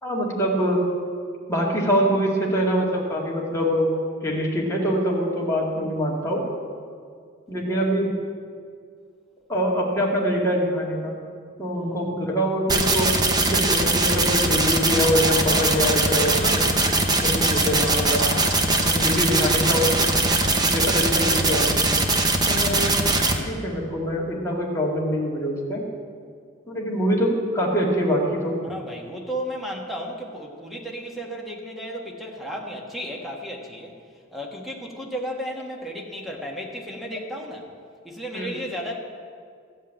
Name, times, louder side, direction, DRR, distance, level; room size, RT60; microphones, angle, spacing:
voice 1, 0.0-0.8 1.5-3.9 4.2-6.4 7.5-8.1 9.5-11.2 11.6-13.1 13.4-16.6 17.2-18.2 18.8-19.9 20.7-21.9 22.5-22.9 23.4-25.8 26.7-28.5 38.3-38.5, equal, 15° left, -4 dB, 2.1 m, -24 dB
sound 1, 12.7-23.3, right 2 dB, 20° right, 0.8 m, -21 dB
Laughter / Crowd, 14.8-20.7, left 3 dB, 40° left, 0.6 m, -35 dB
voice 2, 28.6-34.0 34.3-37.7 38.0-38.9, equal, ahead, -1 dB, 1.4 m, -34 dB
13.5 x 5.6 x 8.7 m, 2.2 s
head